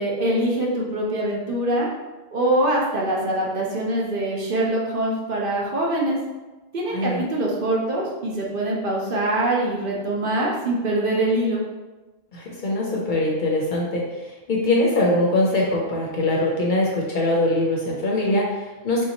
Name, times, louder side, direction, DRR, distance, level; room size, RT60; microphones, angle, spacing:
voice 1, 0.0-1.9 2.3-6.2 6.7-11.6, right 1 dB, 55° right, -3 dB, 0.8 m, -23 dB
voice 2, 6.9-7.2 12.3-19.1, left 1 dB, 55° left, -3 dB, 0.7 m, -22 dB
3.5 x 2.8 x 2.8 m, 1.1 s
omnidirectional pair, 1.1 m